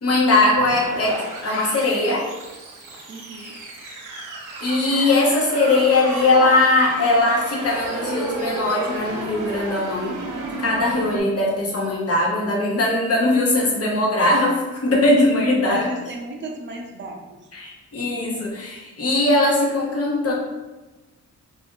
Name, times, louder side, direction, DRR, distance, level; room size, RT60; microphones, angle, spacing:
voice 1, 0.0-2.3 3.4-3.5 4.6-10.2 10.6-15.9 17.5-20.3, left 2 dB, 50° left, -3 dB, 1.0 m, -20 dB
sound 1, 0.5-11.2, right 2 dB, 80° right, 0.8 m, -32 dB
voice 2, 3.1-3.6 15.6-17.4, right 2 dB, 40° right, 1 dB, 0.6 m, -34 dB
2.6 x 2.4 x 3.6 m, 1.2 s
cardioid pair, 80°, 30 cm